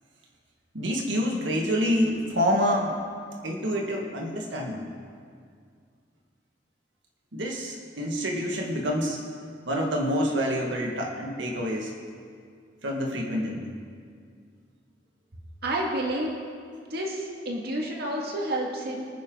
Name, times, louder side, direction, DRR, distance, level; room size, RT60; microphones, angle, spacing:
voice 1, 0.7-2.9 3.4-4.9 7.3-9.2 9.7-11.9 12.8-13.7, equal, 90° right, -1 dB, 1.9 m, -27 dB
voice 2, 15.6-16.3 16.9-19.1, right 1 dB, 60° right, -1 dB, 2.1 m, -30 dB
24.5 x 9.7 x 3.9 m, 2.2 s
head